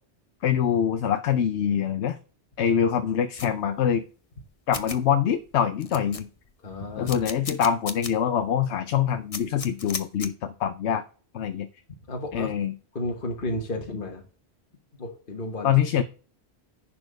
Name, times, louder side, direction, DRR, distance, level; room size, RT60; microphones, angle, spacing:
voice 1, 0.4-2.2 2.6-4.0 4.7-6.3 7.0-11.0 11.3-11.7 12.3-12.7 15.6-16.0, left 8 dB, 75° left, 10 dB, 1.0 m, -24 dB
sound 1, 3.4-3.5 4.4-4.5 4.7-5.0 5.5-5.6 5.8-6.5 7.1-8.1 8.5-8.6 9.3-10.3, left 4 dB, 35° left, 0.9 m, -35 dB
voice 2, 6.6-7.2 12.1-12.5 12.9-14.2 15.0-15.7, left 1 dB, 50° left, 1 dB, 1.6 m, -32 dB
10.5 x 4.5 x 6.3 m, 0.41 s
omnidirectional pair, 1.2 m